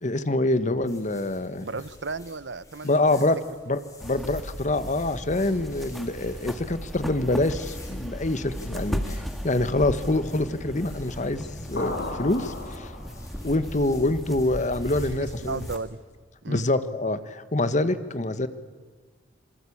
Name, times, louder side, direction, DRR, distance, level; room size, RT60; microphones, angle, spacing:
voice 1, 0.0-1.6 2.8-3.4 3.6-12.9 13.4-15.6 16.5-18.5, left 2 dB, 40° left, 12 dB, 1.3 m, -26 dB
sound 1, 0.8-15.8, left 2 dB, 20° left, 5.1 m, -51 dB
voice 2, 1.6-3.3 15.1-16.0 16.4-16.6, right 4 dB, 75° right, 17 dB, 0.9 m, -35 dB
sound 2, 4.0-15.8, equal, ahead, 1.9 m, -36 dB
sound 3, 11.8-13.5, left 2 dB, 80° left, 3.6 m, -34 dB
27.0 x 23.5 x 8.6 m, 1.5 s
head